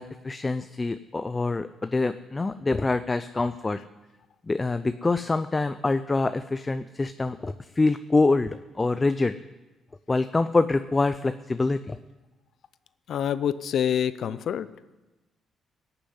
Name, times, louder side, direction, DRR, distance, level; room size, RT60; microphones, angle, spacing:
voice 1, 0.0-3.8 4.5-9.3 10.1-12.0, left 3 dB, 20° left, 11 dB, 0.5 m, -25 dB
voice 2, 13.1-14.7, left 9 dB, 65° left, 15 dB, 0.6 m, -26 dB
17.5 x 6.9 x 7.9 m, 1.1 s
cardioid pair, 90°, 0 cm